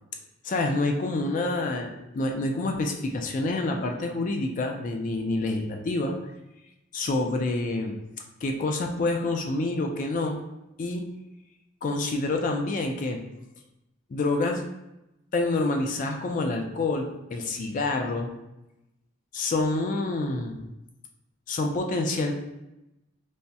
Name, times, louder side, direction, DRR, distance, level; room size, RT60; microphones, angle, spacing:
voice 1, 0.4-6.2 6.9-8.0 8.4-10.4 10.8-11.2 11.8-13.2 14.1-14.7 15.3-18.3 19.3-20.6 21.5-22.3, left 2 dB, 40° left, 3 dB, 0.3 m, -27 dB
3.4 x 2.0 x 2.7 m, 0.93 s
head